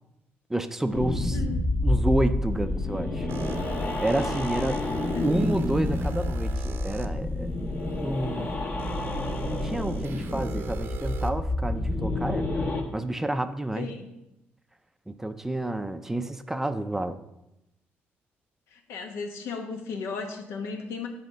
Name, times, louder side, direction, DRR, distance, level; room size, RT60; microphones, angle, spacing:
voice 1, 0.5-1.4 1.8-3.3 4.0-4.8 5.2-7.5 8.0-8.6 9.1-12.6 12.9-13.9 15.1-17.2, right 1 dB, 10° right, 10 dB, 0.4 m, -29 dB
sound 1, 0.9-12.8, left 2 dB, 45° left, 1.2 m, -29 dB
voice 2, 1.2-1.8 4.5-5.3 13.7-14.2 18.7-21.1, left 5 dB, 85° left, 3 dB, 1.2 m, -36 dB
sound 2, 3.3-7.1 7.8-7.9 8.8-11.3, right 6 dB, 60° right, 0.7 m, -39 dB
8.0 x 4.2 x 6.2 m, 0.89 s
cardioid pair, 120°, 4 cm